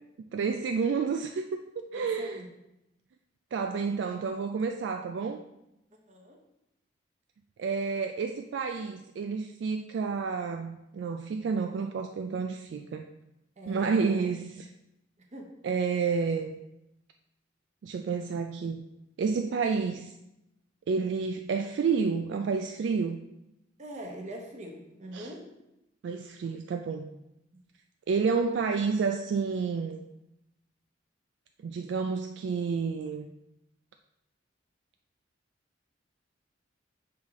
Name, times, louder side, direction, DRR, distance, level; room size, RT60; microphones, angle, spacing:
voice 1, 0.3-1.4 1.8-2.4 3.5-5.4 7.6-13.1 13.7-14.7 15.6-16.6 17.8-18.8 19.2-20.1 20.9-23.2 25.1-25.3 26.0-27.1 28.1-30.1 31.6-33.3, right 5 dB, 65° right, 6 dB, 0.3 m, -30 dB
voice 2, 1.9-2.5 6.1-6.4 13.6-14.1 15.3-15.6 23.8-25.5 27.5-27.6, right 1 dB, 40° right, 1 dB, 1.0 m, -42 dB
5.6 x 4.9 x 3.6 m, 0.90 s
head